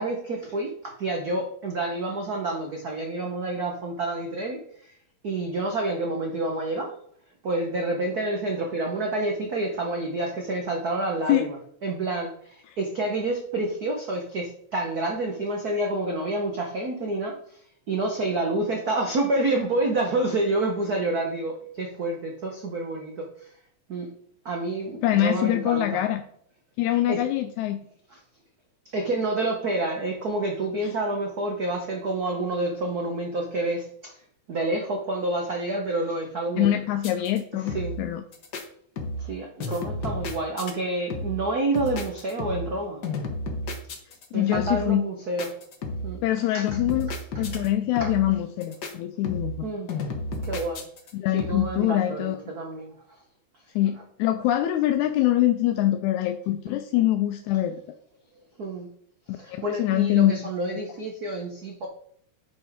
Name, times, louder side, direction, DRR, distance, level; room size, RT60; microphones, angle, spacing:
voice 1, 0.0-4.9 5.2-6.9 7.4-11.6 11.8-17.6 17.9-23.5 23.9-24.1 24.4-26.0 27.1-27.2 28.1-28.2 28.9-34.2 34.5-36.7 37.6-37.9 39.2-43.0 44.3-45.5 46.0-46.2 46.5-46.6 48.0-48.1 49.6-49.9 50.4-50.8 51.3-52.9 57.6-57.7 58.6-58.9 59.3-61.9, right 2 dB, 85° right, 1 dB, 0.8 m, -28 dB
voice 2, 25.0-26.2 26.8-27.8 36.6-38.2 44.3-45.0 46.2-49.5 51.1-52.4 53.8-57.8 59.5-60.8, left 13 dB, 85° left, 7 dB, 2.0 m, -24 dB
sound 1, 37.0-37.4 37.7-38.1 38.3-38.6 39.0-39.3 39.6-40.7 41.1-41.5 41.7-42.8 43.0-44.3 44.5-44.9 45.4-46.2 46.7-47.7 48.0-48.3 48.6-48.9 49.2-49.6 49.9-51.1 51.4-51.8, left 1 dB, 60° left, 1.1 m, -32 dB
9.7 x 5.4 x 3.5 m, 0.62 s
omnidirectional pair, 3.3 m